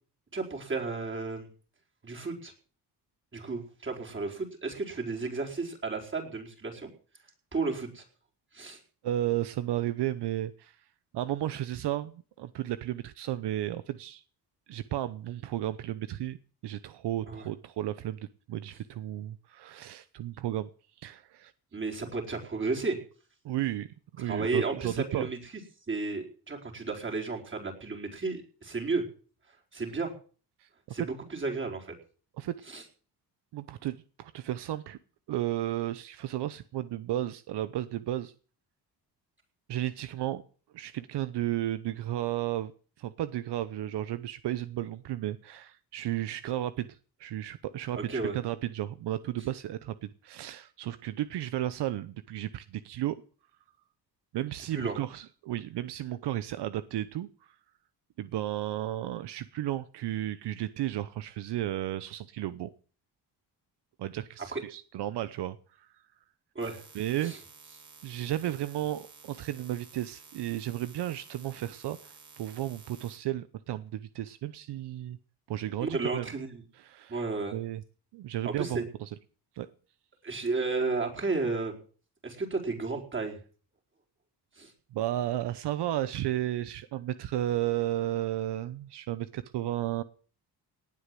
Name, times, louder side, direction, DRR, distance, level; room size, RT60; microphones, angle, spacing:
voice 1, 0.3-1.5 2.0-2.5 3.3-6.9 7.5-8.0 8.5-8.8 17.3-17.5 21.7-23.0 24.2-25.4 25.9-29.0 29.7-30.1 30.9-31.9 32.7-32.8 48.0-48.3 54.7-55.0 64.5-64.6 66.5-66.8 67.2-67.4 75.8-76.6 77.1-77.6 78.4-78.8 80.2-81.8 82.2-83.4 84.6-84.7, right 3 dB, 30° right, 1 dB, 4.5 m, -33 dB
voice 2, 9.0-10.7 11.1-14.2 14.7-16.4 16.6-20.7 21.0-21.5 23.4-23.9 24.2-25.3 30.6-30.7 31.0-31.1 32.4-32.6 33.5-35.0 35.3-38.3 39.7-40.4 40.7-42.7 43.0-46.9 47.2-53.2 54.3-57.3 58.2-62.7 64.0-65.9 66.9-67.3 68.0-75.2 75.5-76.3 76.8-77.2 77.5-77.8 78.1-79.1 79.6-79.7 84.9-90.0, right 13 dB, 80° right, 14 dB, 0.9 m, -33 dB
sound 1, 66.6-73.2, right 4 dB, 45° right, 4.5 m, -53 dB
18.5 x 8.4 x 7.6 m, 0.41 s
cardioid pair, 110°, 40 cm